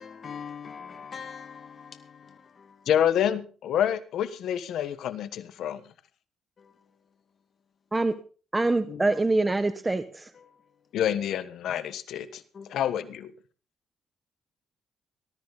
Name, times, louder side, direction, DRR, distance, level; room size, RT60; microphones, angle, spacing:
voice 1, 0.0-2.9 6.6-7.2 8.9-9.2 10.3-11.0 12.5-12.9, left 6 dB, 45° left, 2.2 m, -44 dB
voice 2, 2.9-5.8 10.9-12.4 12.7-13.3, left 10 dB, 75° left, 1.3 m, -27 dB
voice 3, 8.5-10.3, right 2 dB, 20° right, 1.1 m, -25 dB
19.5 x 13.0 x 4.0 m
cardioid pair, 90°, 0 cm